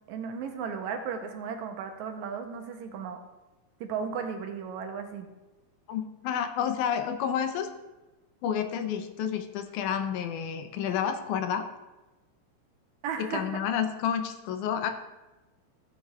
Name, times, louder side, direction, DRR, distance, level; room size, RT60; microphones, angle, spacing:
voice 1, 0.1-3.2 3.8-5.3 13.0-13.6, right 6 dB, 80° right, 5 dB, 2.0 m, -35 dB
voice 2, 5.9-7.7 8.4-11.7 13.3-14.9, left 8 dB, 80° left, 7 dB, 2.1 m, -30 dB
14.5 x 7.5 x 2.3 m, 1.1 s
omnidirectional pair, 3.5 m